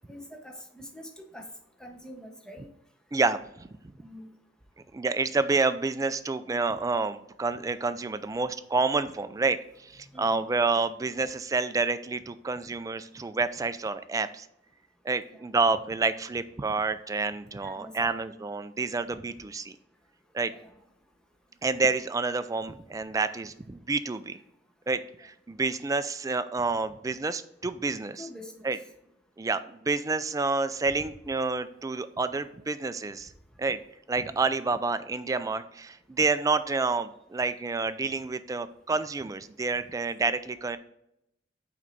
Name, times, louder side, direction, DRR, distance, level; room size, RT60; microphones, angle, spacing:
voice 1, 0.1-1.5 1.8-2.7 4.0-4.3 10.1-10.5 15.3-15.4 17.6-18.2 20.5-20.7 23.3-23.4 28.2-28.7, left 1 dB, 5° left, 3 dB, 0.9 m, -45 dB
voice 2, 3.1-3.7 4.9-14.5 15.0-19.8 20.3-20.5 21.6-24.4 24.9-28.2 28.6-28.8 29.4-33.3 33.6-33.8 34.1-40.8, right 3 dB, 20° right, 11 dB, 0.3 m, -29 dB
6.1 x 4.4 x 3.9 m, 0.77 s
head